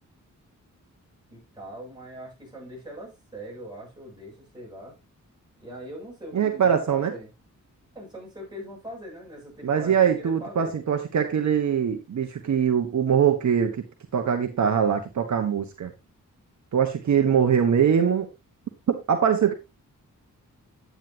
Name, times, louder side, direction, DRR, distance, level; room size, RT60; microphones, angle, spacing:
voice 1, 1.3-5.0 5.6-7.3 8.0-10.7, equal, 15° right, 7.0 m, -41 dB
voice 2, 6.3-7.1 9.6-13.8 14.1-15.9 16.7-18.3 18.9-19.5, right 8 dB, 60° right, 1.3 m, -22 dB
10.0 x 9.3 x 2.8 m
wide cardioid pair, 140°, 32 cm